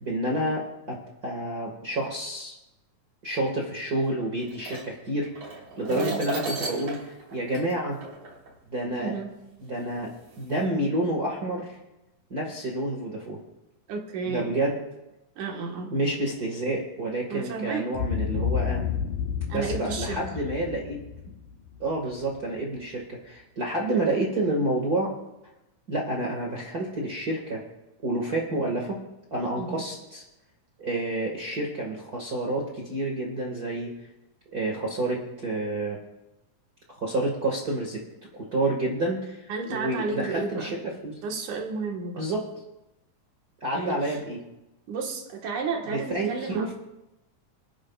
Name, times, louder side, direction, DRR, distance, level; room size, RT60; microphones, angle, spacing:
voice 1, 0.0-2.6 3.2-5.3 5.8-8.0 8.7-9.1 9.6-11.7 12.3-13.4 14.3-14.7 15.9-18.9 19.5-21.0 21.8-25.1 25.9-27.6 28.0-29.0 29.3-30.2 30.8-33.9 34.5-36.0 37.0-38.0 38.3-41.2 42.2-42.4 43.6-44.4 45.9-46.7, right 1 dB, 35° right, -3 dB, 1.8 m, -29 dB
sound 1, 4.4-8.5 9.4-9.5 10.2-10.6, right 2 dB, 50° right, 4.3 m, -36 dB
voice 2, 5.9-6.2 9.0-9.3 13.9-14.6 15.4-15.9 17.3-17.9 19.5-20.2 29.6-29.8 39.5-40.7 41.2-42.2 43.7-44.2 44.9-46.7, right 4 dB, 70° right, 1 dB, 2.9 m, -32 dB
Boom, 17.9-22.2, left 8 dB, 75° left, 2.3 m, -30 dB
26.5 x 10.0 x 2.4 m, 0.93 s
omnidirectional pair, 3.7 m